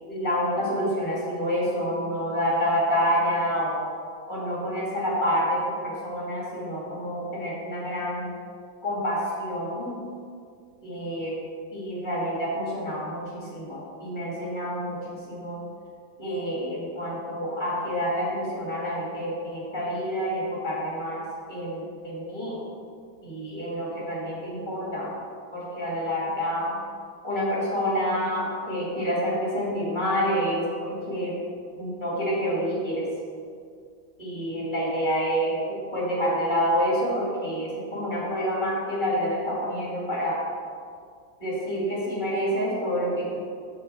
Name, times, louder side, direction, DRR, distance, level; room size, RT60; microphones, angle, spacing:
voice 1, 0.1-3.8 4.3-8.3 8.8-10.0 10.8-11.4 11.7-15.6 16.2-21.2 21.5-22.6 23.2-25.1 25.5-26.7 27.2-31.4 31.8-33.1 34.2-40.4 41.4-43.4, equal, 30° left, -6 dB, 2.4 m, -28 dB
13.5 x 4.9 x 3.4 m, 2.2 s
omnidirectional pair, 1.6 m